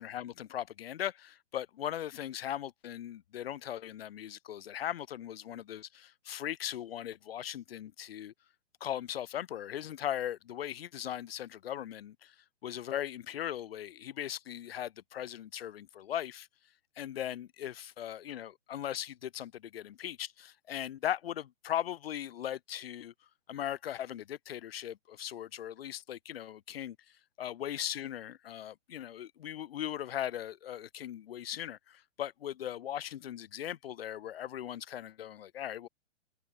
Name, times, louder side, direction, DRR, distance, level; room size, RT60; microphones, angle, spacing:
voice 1, 0.0-8.3 8.8-12.3 12.6-16.5 17.0-23.1 23.5-27.0 27.4-35.9, left 11 dB, 55° left, 4.6 m, -39 dB
figure-of-eight pair, 125°, 36 cm